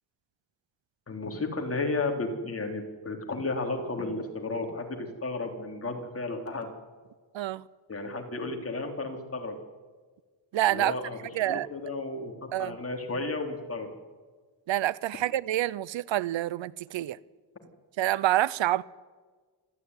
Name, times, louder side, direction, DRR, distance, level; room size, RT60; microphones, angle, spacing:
voice 1, 1.1-6.7 7.9-9.6 10.7-11.2 11.5-12.3 12.6-13.9, left 3 dB, 30° left, 3.6 m, -33 dB
voice 2, 10.5-10.9 11.3-11.7 12.5-12.8 14.7-17.2 18.0-18.8, right 14 dB, 90° right, 0.7 m, -27 dB
26.5 x 13.0 x 9.7 m
wide cardioid pair, 140°, 44 cm